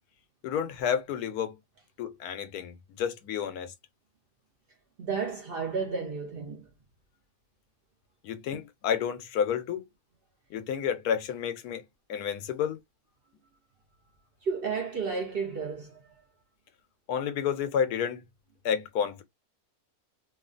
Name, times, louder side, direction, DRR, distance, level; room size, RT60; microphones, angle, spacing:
voice 1, 0.4-1.6 2.0-3.7 8.2-9.8 10.5-11.8 12.1-12.8 17.1-18.2 18.6-19.2, left 8 dB, 90° left, 1.2 m, -30 dB
voice 2, 5.0-6.7 14.4-16.0, right 5 dB, 55° right, 0.7 m, -32 dB
3.1 x 2.4 x 2.4 m
omnidirectional pair, 1.6 m